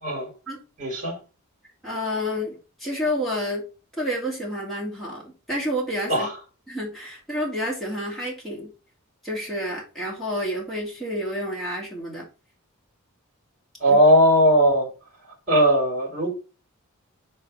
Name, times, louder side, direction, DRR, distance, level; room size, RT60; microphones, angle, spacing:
voice 1, 0.8-1.2 6.1-6.3 13.8-14.9 15.5-16.3, equal, 35° right, 3.6 m, -18 dB
voice 2, 1.8-3.7 4.0-6.3 6.7-8.7 9.2-12.3 13.9-14.0, equal, ahead, 2.9 m, -29 dB
4.7 x 4.5 x 5.7 m
head